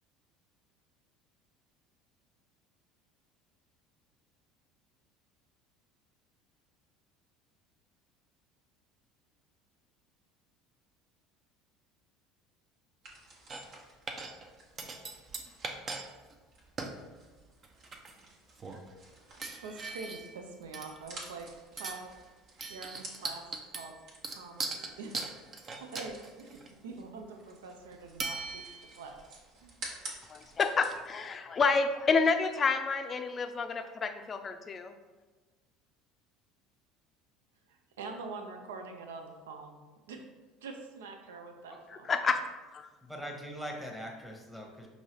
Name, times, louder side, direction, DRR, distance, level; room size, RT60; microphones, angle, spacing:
sound 1, 13.0-31.1, right 2 dB, 60° right, 1.1 m, -52 dB
sound 2, 13.5-13.8 14.1-14.5 14.8-16.0 16.3-16.4 16.8-17.0 17.6-18.3 18.6-18.9 19.4-20.4 20.7-21.4 21.8-22.1 22.6-26.7 28.2-29.0, right 3 dB, 35° right, 0.5 m, -39 dB
voice 1, 19.0-22.1 22.7-23.4 23.7-24.0 24.2-25.3 25.8-29.2 29.5-29.8 37.7-39.8 40.1-40.2 40.6-42.2, right 4 dB, 80° right, 4 dB, 0.5 m, -45 dB
voice 2, 30.3-34.9 42.1-42.4 42.7-42.9, left 4 dB, 35° left, 8 dB, 0.4 m, -29 dB
voice 3, 43.0-44.9, equal, ahead, 1 dB, 0.9 m, -42 dB
5.3 x 2.8 x 2.9 m, 1.3 s
hypercardioid pair, 70°, 0 cm